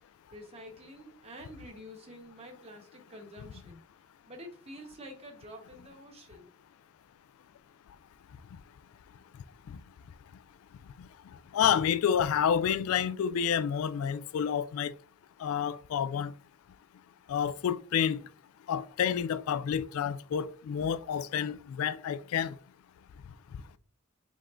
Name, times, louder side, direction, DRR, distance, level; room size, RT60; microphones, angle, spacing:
voice 1, 0.3-3.8 4.3-6.5, equal, 30° right, 1.1 m, -48 dB
voice 2, 11.5-14.9 15.4-16.3 17.3-18.2 18.7-22.5, left 8 dB, 85° left, 0.3 m, -29 dB
5.3 x 3.6 x 2.5 m
head